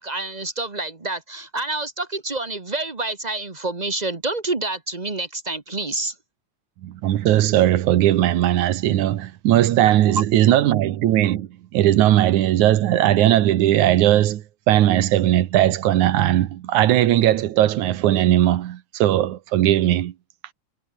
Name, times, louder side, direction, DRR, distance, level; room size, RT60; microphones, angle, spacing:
voice 1, 0.0-6.1 10.2-10.3, right 2 dB, 30° right, 0.7 m, -28 dB
voice 2, 6.8-20.1, right 13 dB, 80° right, 2.6 m, -18 dB
omnidirectional pair, 3.4 m